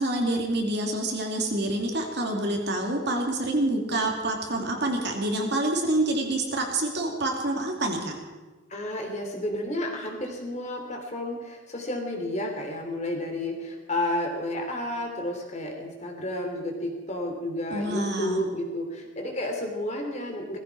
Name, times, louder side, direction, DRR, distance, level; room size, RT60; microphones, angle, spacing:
voice 1, 0.0-8.2 17.7-18.4, right 1 dB, 55° right, 1 dB, 2.7 m, -27 dB
voice 2, 8.7-20.6, left 1 dB, 35° left, 2 dB, 3.0 m, -31 dB
19.5 x 15.0 x 4.7 m, 1.2 s
head